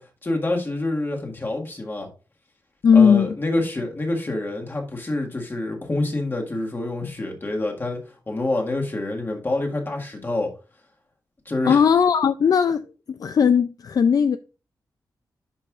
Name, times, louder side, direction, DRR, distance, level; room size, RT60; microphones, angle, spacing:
voice 1, 0.0-2.1 2.9-10.5 11.4-11.8, left 2 dB, 30° left, 1.7 m, -27 dB
voice 2, 2.8-3.4 11.7-14.4, left 6 dB, 60° left, 0.3 m, -18 dB
10.0 x 5.4 x 2.4 m
wide cardioid pair, 115°, 7 cm